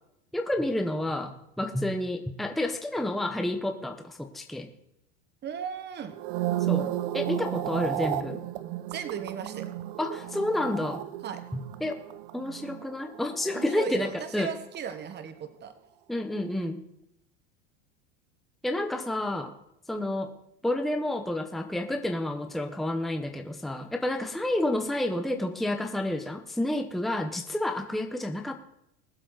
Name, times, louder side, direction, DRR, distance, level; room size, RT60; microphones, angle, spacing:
voice 1, 0.3-4.7 6.7-8.4 10.0-11.0 11.5-12.0 12.3-14.5 16.1-16.8 18.6-19.5 19.9-20.4 20.6-28.5, left 1 dB, ahead, 5 dB, 1.0 m, -30 dB
voice 2, 5.4-6.1 8.9-9.7 11.2-11.4 13.5-15.7, right 8 dB, 30° right, 10 dB, 1.4 m, -36 dB
sound 1, 6.1-14.5 14.7-15.1, right 13 dB, 65° right, 0.9 m, -34 dB
21.5 x 7.4 x 4.1 m, 0.78 s
supercardioid pair, 115°, 35 cm